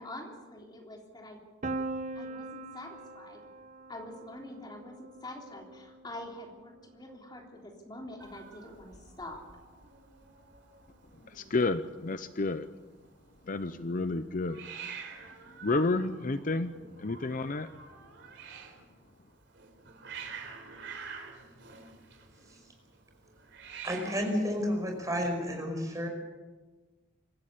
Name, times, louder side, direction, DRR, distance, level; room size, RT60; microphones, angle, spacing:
voice 1, 0.0-1.4 2.2-3.4 3.9-9.4, left 1 dB, 20° left, 1 dB, 3.4 m, -45 dB
Piano, 1.6-7.4, right 2 dB, 40° right, 1.1 m, -42 dB
Hiss, 8.2-25.5, right 6 dB, 65° right, 3.9 m, -49 dB
voice 2, 11.3-12.7 13.5-14.6 15.6-16.7 17.0-17.7, left 3 dB, 45° left, 11 dB, 0.7 m, -30 dB
voice 3, 23.8-26.1, equal, 20° right, 2 dB, 5.2 m, -31 dB
25.5 x 14.5 x 8.5 m, 1.3 s
head